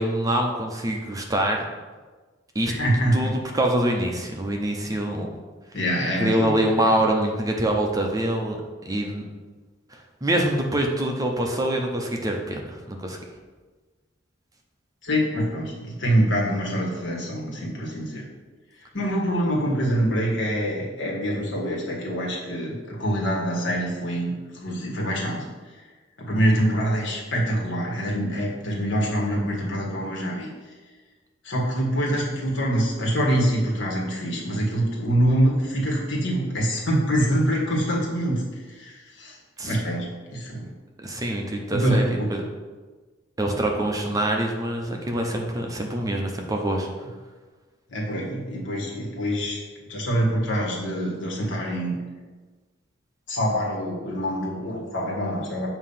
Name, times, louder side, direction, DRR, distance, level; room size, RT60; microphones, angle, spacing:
voice 1, 0.0-1.6 2.5-2.7 3.1-5.3 6.2-8.6 8.9-9.2 9.9-13.2 39.6-39.8 41.0-42.4 43.4-46.9, right 1 dB, 20° right, 1 dB, 0.6 m, -25 dB
voice 2, 2.7-3.3 5.7-7.0 15.0-18.2 18.9-25.4 26.2-30.5 31.4-39.4 39.6-40.7 41.7-42.3 47.9-49.6 49.9-52.0 53.3-55.7, equal, 65° left, -3 dB, 1.5 m, -25 dB
7.0 x 2.8 x 5.5 m, 1.3 s
head